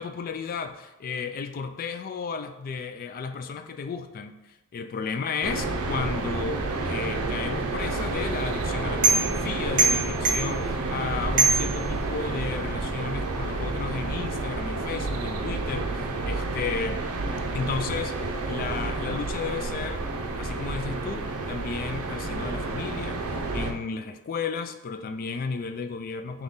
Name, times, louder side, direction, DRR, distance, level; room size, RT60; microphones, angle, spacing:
voice 1, 0.0-17.0 17.5-20.1 20.4-26.4, left 5 dB, 40° left, 8 dB, 0.3 m, -33 dB
sound 1, 5.4-23.7, right 3 dB, 70° right, 0.5 m, -30 dB
sound 2, 7.8-12.5, right 3 dB, 35° right, 0.9 m, -27 dB
3.6 x 3.0 x 3.9 m, 1.1 s
head